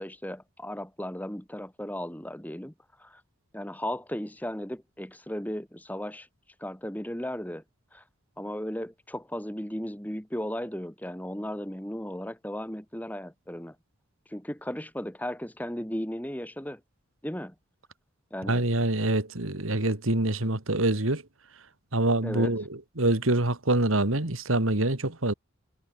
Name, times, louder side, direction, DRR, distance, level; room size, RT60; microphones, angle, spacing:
voice 1, 0.0-2.7 3.0-3.2 3.5-6.3 6.6-7.6 7.9-8.0 8.4-13.8 14.3-16.8 17.2-17.5 18.3-18.7 22.2-22.6, equal, 10° left, 2.1 m, -35 dB
voice 2, 18.5-21.2 21.9-25.3, right 2 dB, 70° right, 2.4 m, -25 dB
head